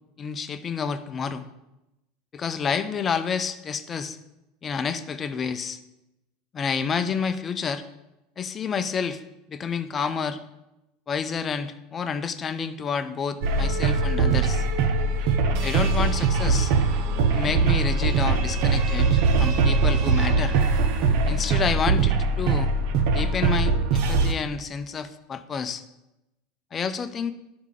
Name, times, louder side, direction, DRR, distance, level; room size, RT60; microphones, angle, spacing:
voice 1, 0.2-1.4 2.3-4.2 4.6-5.8 6.5-7.8 8.4-9.2 9.5-10.4 11.1-14.7 15.6-16.7 17.3-20.6 21.3-22.7 23.1-25.8 26.7-27.3, left 6 dB, 25° left, 10 dB, 0.6 m, -29 dB
sound 1, 13.4-24.3, right 4 dB, 65° right, 0.8 m, -22 dB
11.5 x 4.8 x 3.8 m, 0.93 s
supercardioid pair, 125°, 0 cm